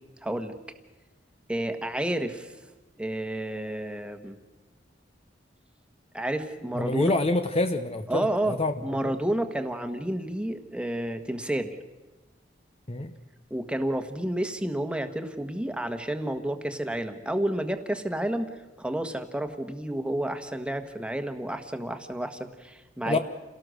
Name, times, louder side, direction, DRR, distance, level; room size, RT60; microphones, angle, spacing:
voice 1, 0.2-0.5 1.5-2.5 3.0-4.4 6.1-7.1 8.1-8.6 8.8-11.8 13.5-18.5 18.8-23.2, right 1 dB, 5° right, 7 dB, 1.4 m, -30 dB
voice 2, 6.7-8.7 9.0-9.1 12.9-13.1 23.0-23.2, left 2 dB, 35° left, 8 dB, 0.9 m, -26 dB
28.5 x 18.0 x 6.5 m, 1.1 s
head